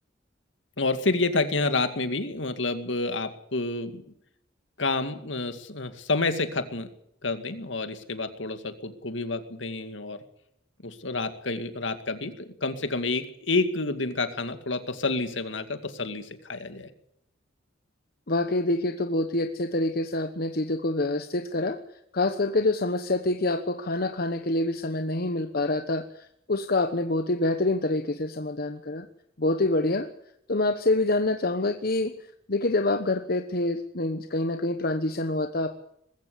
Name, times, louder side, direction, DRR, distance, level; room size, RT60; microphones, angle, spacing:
voice 1, 0.8-4.0 4.8-6.9 7.2-10.2 10.8-16.9, left 3 dB, 75° left, 9 dB, 2.3 m, -29 dB
voice 2, 18.3-21.8 22.1-26.0 26.5-29.1 29.4-30.1 30.5-32.1 32.5-35.8, left 2 dB, 55° left, 8 dB, 1.2 m, -26 dB
20.5 x 15.5 x 8.5 m, 0.73 s
head